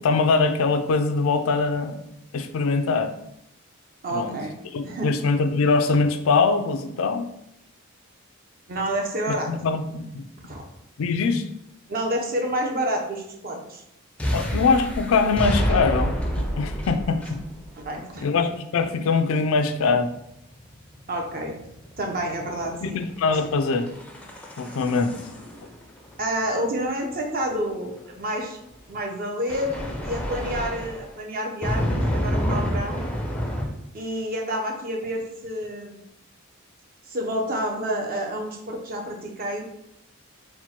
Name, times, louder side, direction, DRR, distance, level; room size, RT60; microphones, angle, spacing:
voice 1, 0.0-2.0 2.3-3.1 4.1-4.4 4.7-7.3 9.5-10.2 11.0-11.4 14.3-17.4 18.2-20.1 22.8-23.9 24.6-25.1, left 4 dB, 65° left, 8 dB, 0.4 m, -22 dB
voice 2, 4.0-4.5 4.8-5.1 8.7-9.5 10.4-10.6 11.9-13.8 14.2-14.3 17.7-18.3 21.1-21.6 22.0-23.0 26.2-28.6 28.9-33.0 33.9-36.0 37.1-39.7, right 1 dB, 40° right, 1 dB, 0.7 m, -29 dB
sound 1, 14.2-17.8 19.7-28.1 29.5-31.1 31.6-33.7, equal, 5° left, 0.4 m, -28 dB
4.4 x 2.1 x 4.3 m, 0.79 s
head